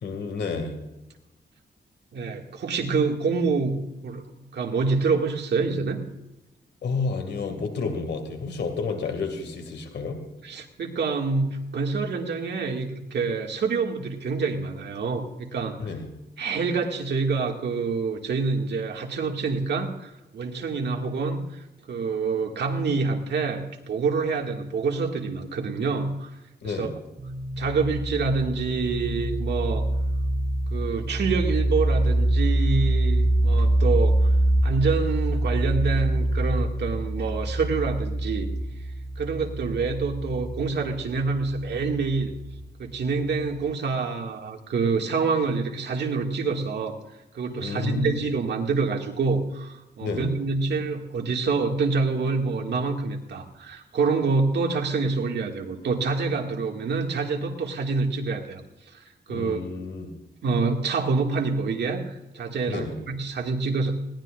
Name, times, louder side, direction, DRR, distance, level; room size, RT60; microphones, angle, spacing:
voice 1, 0.0-0.8 6.8-10.2 15.8-16.1 26.6-26.9 47.6-48.2 50.0-50.3 59.3-60.1 62.7-63.0, left 4 dB, 75° left, 5 dB, 2.3 m, -30 dB
voice 2, 2.1-4.2 4.5-6.0 10.4-15.9 16.4-26.3 26.6-26.9 27.6-29.9 30.7-34.3 34.6-38.5 39.2-42.3 42.8-47.0 47.3-58.6 58.9-59.6 60.4-63.9, right 4 dB, 75° right, 2 dB, 2.1 m, -27 dB
sound 1, 27.2-42.6, right 1 dB, 40° right, 2.0 m, -25 dB
20.5 x 18.0 x 2.5 m, 0.99 s
cardioid pair, 90°, 18 cm